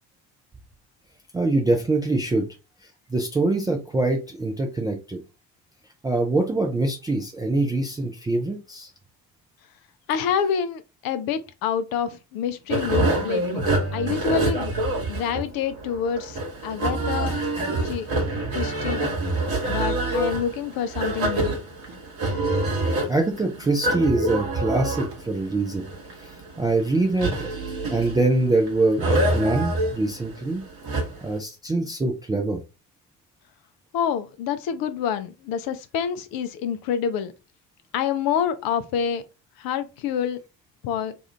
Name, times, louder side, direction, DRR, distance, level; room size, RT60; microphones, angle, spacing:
voice 1, 1.3-2.5 3.1-5.2 6.0-8.9 23.1-25.8 26.6-27.5 27.9-30.6 31.2-32.6, right 2 dB, 10° right, 0.3 m, -24 dB
voice 2, 10.1-14.7 15.1-17.4 17.8-18.1 18.5-19.0 19.7-21.5 33.9-37.3 37.9-39.2 39.6-40.4 40.8-41.1, left 8 dB, 45° left, 0.5 m, -27 dB
sound 1, 12.7-31.4, right 2 dB, 45° right, 1.2 m, -26 dB
2.6 x 2.4 x 3.2 m
figure-of-eight pair, 50°, 50 cm